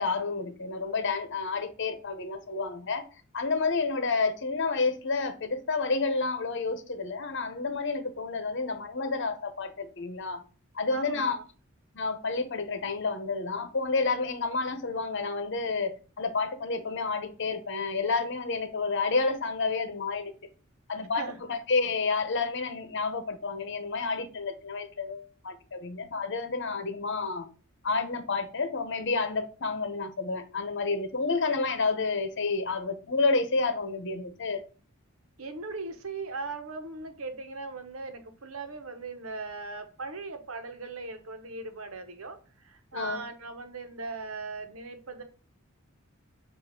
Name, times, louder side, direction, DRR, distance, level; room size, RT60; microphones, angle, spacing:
voice 1, 0.0-3.1 3.3-10.4 10.7-11.4 11.9-20.3 20.9-27.5 27.8-34.6 42.9-43.2, left 4 dB, 60° left, 1.0 m, -30 dB
voice 2, 10.9-11.4 20.9-21.4 35.4-45.2, right 3 dB, 85° right, 1.1 m, -39 dB
7.5 x 2.7 x 5.9 m
head